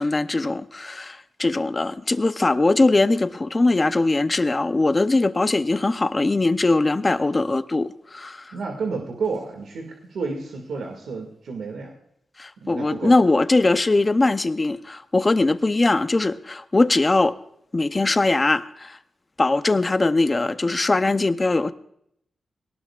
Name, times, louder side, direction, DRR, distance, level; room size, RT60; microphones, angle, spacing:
voice 1, 0.0-8.5 12.4-17.4 17.7-19.0 19.4-21.7, left 2 dB, 25° left, 11 dB, 0.6 m, -21 dB
voice 2, 8.5-11.9 12.6-13.1, right 4 dB, 90° right, 1 dB, 2.1 m, -31 dB
22.0 x 18.5 x 2.5 m, 0.74 s
wide cardioid pair, 130°, 0 cm